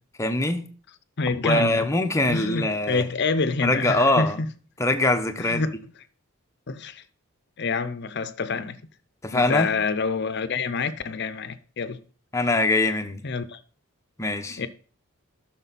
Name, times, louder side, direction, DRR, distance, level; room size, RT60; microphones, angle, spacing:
voice 1, 0.2-0.7 1.4-3.1 3.6-4.4 4.8-5.6 9.2-9.7 12.3-13.2 14.2-14.6, left 2 dB, 15° left, 0.9 m, -23 dB
voice 2, 1.2-1.9 2.2-4.5 5.4-5.7 6.7-7.0 7.6-8.9 9.3-12.0 13.2-13.6 14.6-14.7, left 4 dB, 55° left, 0.7 m, -27 dB
13.5 x 6.2 x 4.1 m
head